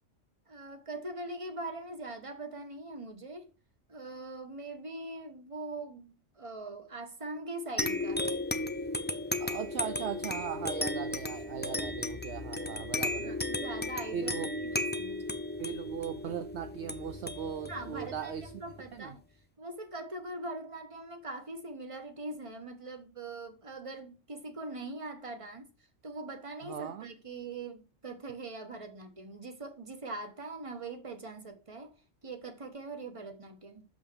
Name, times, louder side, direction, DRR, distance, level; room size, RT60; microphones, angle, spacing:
voice 1, 0.5-3.5 3.9-8.5 13.2-14.3 14.6-15.4 17.7-19.2 19.6-25.7 26.0-32.0 32.2-33.8, right 2 dB, 25° right, 1.3 m, -42 dB
sound 1, 7.8-18.9, left 2 dB, 15° left, 0.4 m, -35 dB
voice 2, 9.4-13.4 14.1-14.5 15.6-18.5 18.9-19.1 26.6-27.1, right 8 dB, 65° right, 0.9 m, -38 dB
6.8 x 5.6 x 6.1 m
omnidirectional pair, 1.4 m